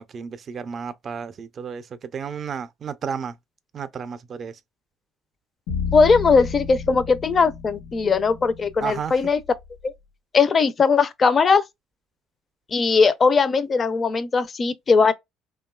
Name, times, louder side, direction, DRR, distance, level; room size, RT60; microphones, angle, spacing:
voice 1, 0.0-3.4 3.7-4.6 8.8-9.2, right 6 dB, 45° right, 0.4 m, -32 dB
sound 1, 5.7-9.9, left 5 dB, 80° left, 0.9 m, -33 dB
voice 2, 5.9-9.4 9.8-9.9 10.3-11.6 12.7-15.1, left 5 dB, 35° left, 0.4 m, -19 dB
2.8 x 2.3 x 2.2 m
supercardioid pair, 80°, 0 cm